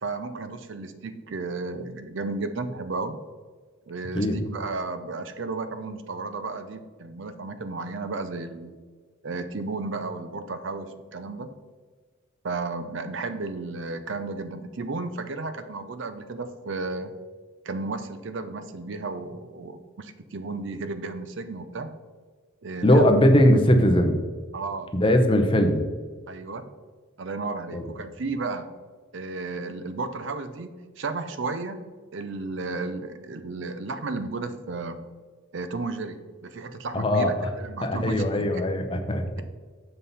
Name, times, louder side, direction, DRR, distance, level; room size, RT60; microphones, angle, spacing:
voice 1, 0.0-3.2 3.9-8.7 9.2-11.5 12.4-17.1 17.6-21.9 22.6-23.1 24.5-24.9 26.3-26.7 27.2-28.7 29.1-31.8 32.1-35.0 35.5-38.6, right 3 dB, 60° right, 10 dB, 0.6 m, -33 dB
voice 2, 22.8-24.2 24.9-25.9 27.7-27.9 36.9-37.5 37.8-39.4, equal, 25° left, 5 dB, 0.7 m, -20 dB
7.5 x 5.4 x 4.1 m, 1.5 s
head